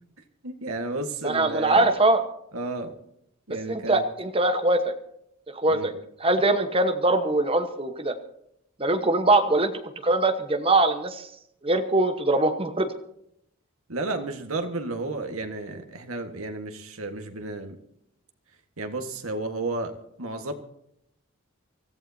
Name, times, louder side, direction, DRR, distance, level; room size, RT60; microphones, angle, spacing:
voice 1, 0.4-1.9 2.5-2.9 3.5-4.0 5.7-5.9 13.9-17.8 18.8-19.9 20.2-20.5, right 2 dB, 85° right, 5 dB, 1.6 m, -32 dB
voice 2, 1.2-2.2 3.7-4.9 5.5-5.9 6.2-8.1 8.8-9.7 10.0-11.3 11.6-12.9, right 2 dB, 25° right, 6 dB, 1.2 m, -22 dB
24.5 x 14.5 x 2.8 m, 0.76 s
head